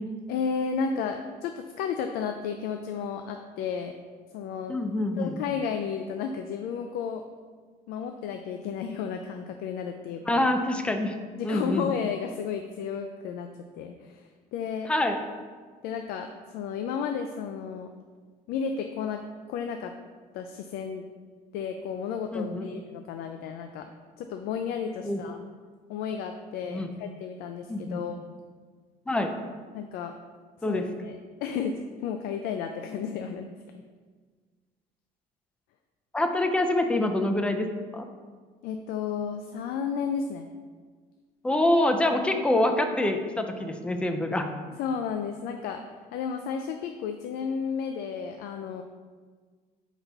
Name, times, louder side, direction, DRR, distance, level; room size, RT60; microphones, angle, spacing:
voice 1, 0.3-3.9 4.3-4.8 5.2-7.2 7.9-10.5 11.4-13.5 13.7-14.9 15.8-17.9 18.5-19.2 19.5-19.9 20.3-21.0 21.5-23.9 24.2-25.4 25.9-28.2 29.7-30.1 30.7-33.8 38.6-40.5 44.8-45.8 46.1-48.8, left 6 dB, 80° left, 6 dB, 0.4 m, -33 dB
voice 2, 4.7-5.4 10.3-11.2 11.4-11.9 14.9-15.2 22.3-22.7 25.0-25.2 26.7-26.9 27.7-28.0 29.1-29.4 30.6-30.9 36.1-37.7 37.9-38.1 41.4-44.5, left 1 dB, 5° left, 6 dB, 0.4 m, -25 dB
5.3 x 4.1 x 4.5 m, 1.5 s
cardioid pair, 160°, 16 cm